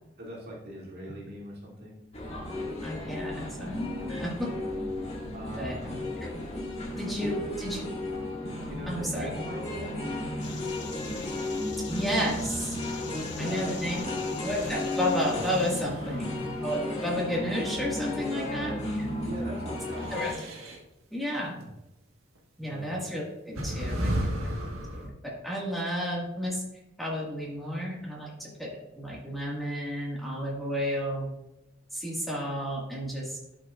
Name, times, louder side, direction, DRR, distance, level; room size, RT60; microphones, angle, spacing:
voice 1, 0.2-2.0 5.3-5.9 7.2-7.5 8.7-10.1 13.1-14.1 16.1-16.2 18.3-18.9 19.3-20.3 21.6-21.7 22.6-22.9, right 1 dB, 50° right, -4 dB, 2.4 m, -41 dB
sound 1, 2.1-20.3, left 1 dB, 30° left, 1.9 m, -34 dB
voice 2, 2.8-4.5 5.6-6.0 6.2-6.4 7.0-7.8 8.9-9.3 11.9-12.8 13.4-14.0 14.4-18.7 20.1-20.3 21.1-21.6 22.6-24.5 24.9-26.6 27.0-28.7 29.0-31.3 31.9-33.5, equal, ahead, -5 dB, 1.8 m, -32 dB
sound 2, 10.4-15.9, left 6 dB, 60° left, 0.9 m, -44 dB
sound 3, 14.4-14.7 15.4-17.4 19.7-20.8 22.3-22.4 23.5-25.1, equal, 75° right, 1.5 m, -34 dB
11.5 x 6.2 x 2.4 m, 0.91 s
head